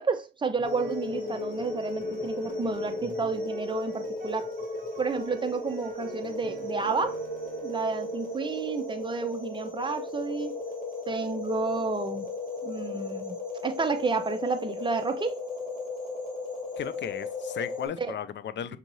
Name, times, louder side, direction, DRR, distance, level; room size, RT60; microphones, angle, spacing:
voice 1, 0.0-4.5 5.0-7.2 7.6-10.6 11.1-12.3 12.6-13.4 13.6-15.3 18.0-18.1, right 4 dB, 25° right, 0.8 m, -31 dB
sound 1, 0.6-17.9, left 2 dB, 45° left, 2.2 m, -35 dB
sound 2, 0.6-8.4, right 5 dB, 45° right, 1.4 m, -48 dB
voice 2, 16.8-18.8, left 8 dB, 60° left, 0.4 m, -35 dB
6.4 x 2.7 x 3.1 m
cardioid pair, 85°, 21 cm